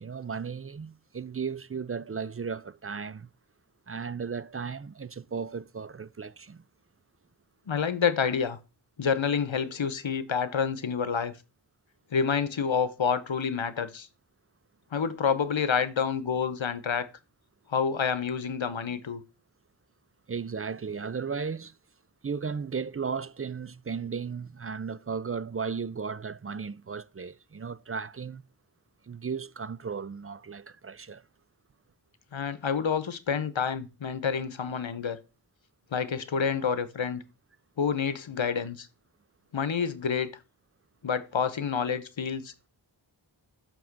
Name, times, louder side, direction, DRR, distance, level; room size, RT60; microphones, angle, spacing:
voice 1, 0.0-3.3 3.9-6.6 20.3-21.8 22.2-28.4 29.1-31.2, right 5 dB, 30° right, 0.4 m, -35 dB
voice 2, 7.7-8.6 9.0-11.4 12.1-14.1 14.9-17.1 17.7-19.2 32.3-35.2 35.9-37.2 37.8-38.9 39.5-40.3 41.0-42.7, left 6 dB, 80° left, 0.9 m, -28 dB
7.3 x 3.6 x 6.0 m
wide cardioid pair, 45°, 46 cm